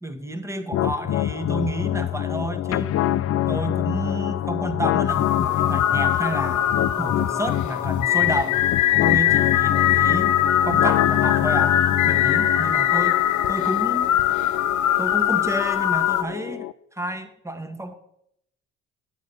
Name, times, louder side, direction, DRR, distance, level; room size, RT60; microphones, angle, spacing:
voice 1, 0.0-3.0 3.5-8.6 9.0-10.3 10.6-13.2 13.5-14.1 15.0-16.7 16.9-18.0, right 1 dB, 10° right, 7 dB, 1.3 m, -30 dB
sound 1, 0.7-16.7, left 12 dB, 50° left, 0.4 m, -26 dB
sound 2, 5.1-16.2, left 11 dB, 75° left, 0.8 m, -22 dB
9.6 x 8.3 x 5.4 m, 0.77 s
cardioid pair, 90°, 30 cm